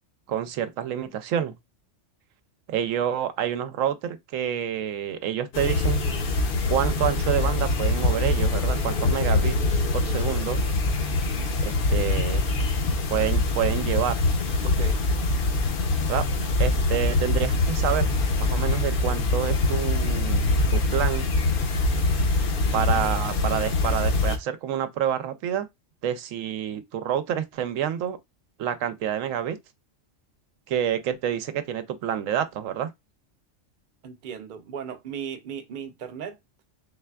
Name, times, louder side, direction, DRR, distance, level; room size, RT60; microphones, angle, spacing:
voice 1, 0.3-1.5 2.7-6.1 6.7-10.6 11.6-12.4 13.1-14.2 16.1-16.3 16.6-18.1 18.4-21.3 22.7-25.7 26.0-28.2 28.6-29.6 30.7-32.9, right 9 dB, 85° right, 1.0 m, -28 dB
sound 1, 5.5-24.4, left 2 dB, 55° left, 0.7 m, -24 dB
voice 2, 14.6-15.0 34.0-36.4, right 7 dB, 50° right, 0.7 m, -36 dB
3.9 x 3.3 x 2.2 m
omnidirectional pair, 1.3 m